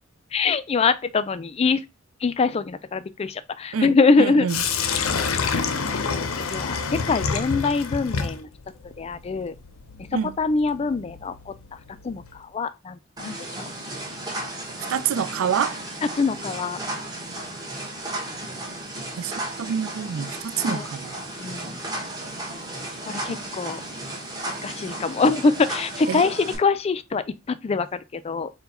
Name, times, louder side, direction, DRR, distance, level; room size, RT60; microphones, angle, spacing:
voice 1, 0.3-1.8 2.2-4.5 4.8-4.9 6.2-8.5 9.0-9.5 10.4-11.5 12.0-13.7 16.1-16.8 20.6-20.8 21.4-21.8 23.1-23.8 24.6-28.5, left 4 dB, 30° left, 0.3 m, -24 dB
voice 2, 3.7-4.6 10.1-10.4 14.9-15.8 19.2-21.2 26.1-26.2, right 7 dB, 70° right, 0.4 m, -27 dB
Sink (filling or washing), 4.5-12.4, left 5 dB, 80° left, 0.6 m, -29 dB
sound 1, 13.2-26.6, right 1 dB, 20° right, 1.2 m, -34 dB
4.5 x 2.2 x 4.2 m
head